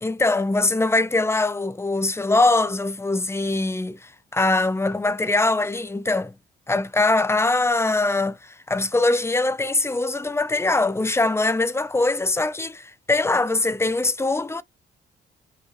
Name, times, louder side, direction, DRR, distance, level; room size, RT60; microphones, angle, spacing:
voice 1, 0.0-6.4 6.7-14.6, left 2 dB, 15° left, 0.5 m, -22 dB
5.5 x 2.7 x 2.9 m
cardioid pair, 90°, 20 cm